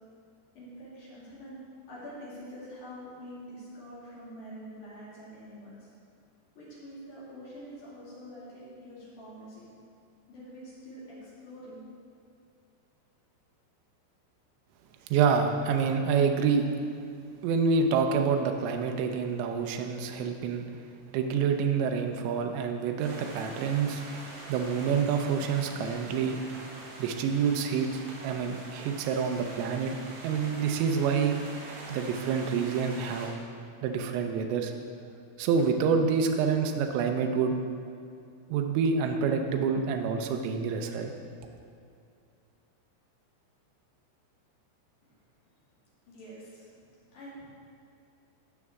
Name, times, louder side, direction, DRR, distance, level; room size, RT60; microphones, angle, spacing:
voice 1, 0.5-1.6 1.9-5.9 6.6-9.7 10.3-11.8 46.1-46.7 47.1-47.4, equal, 50° left, -8 dB, 3.1 m, -45 dB
voice 2, 15.1-16.7 17.4-20.7 21.1-24.0 24.5-26.4 27.0-30.0 30.2-31.4 31.9-33.3 33.8-34.7 35.4-37.5 38.5-41.1, right 6 dB, 80° right, 4 dB, 2.7 m, -27 dB
sound 1, 23.0-33.3, right 2 dB, 65° right, 3.2 m, -45 dB
16.0 x 6.1 x 3.6 m, 2.5 s
omnidirectional pair, 5.8 m